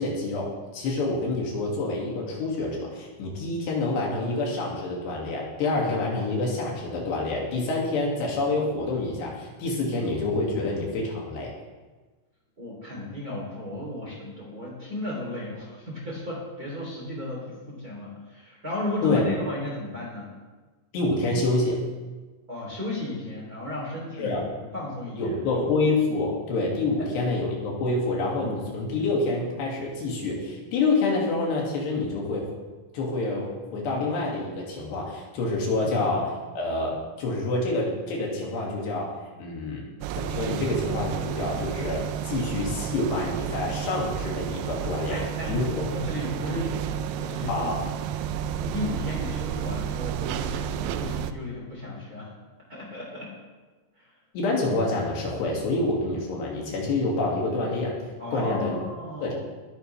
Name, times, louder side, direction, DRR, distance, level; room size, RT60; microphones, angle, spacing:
voice 1, 0.0-11.5 19.0-19.2 20.9-21.8 24.2-24.4 25.2-32.5 32.9-39.1 39.4-39.9 40.2-45.2 45.5-45.8 46.5-46.6 47.5-47.8 54.3-58.0 58.3-58.8 59.2-59.3, left 2 dB, 70° left, -2 dB, 4.4 m, -27 dB
voice 2, 12.6-20.3 22.5-24.4 24.7-25.4 45.1-47.7 48.6-52.3 52.7-53.3 58.2-59.3, left 1 dB, 25° right, -4 dB, 3.1 m, -34 dB
sound 1, 40.0-51.3, right 9 dB, 80° right, 2.5 m, -31 dB
21.0 x 11.0 x 3.4 m, 1.3 s
omnidirectional pair, 5.1 m